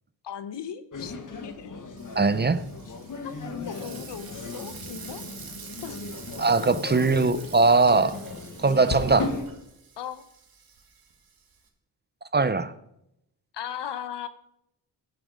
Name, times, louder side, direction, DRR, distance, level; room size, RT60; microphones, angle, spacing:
voice 1, 0.2-1.1 1.4-1.7 3.2-3.4 3.7-5.2 5.8-6.0 6.6-7.2 8.0-8.1 10.0-10.3 13.5-14.3, left 9 dB, 90° left, 13 dB, 1.0 m, -37 dB
sound 1, 0.9-9.4, left 3 dB, 50° left, 1.5 m, -37 dB
Frying (food), 2.0-11.7, right 6 dB, 60° right, 1.9 m, -47 dB
voice 2, 2.2-2.6 6.4-8.2 8.6-9.3 12.3-12.7, right 3 dB, 25° right, 14 dB, 0.5 m, -21 dB
11.5 x 11.5 x 5.1 m, 0.81 s
wide cardioid pair, 155°, 41 cm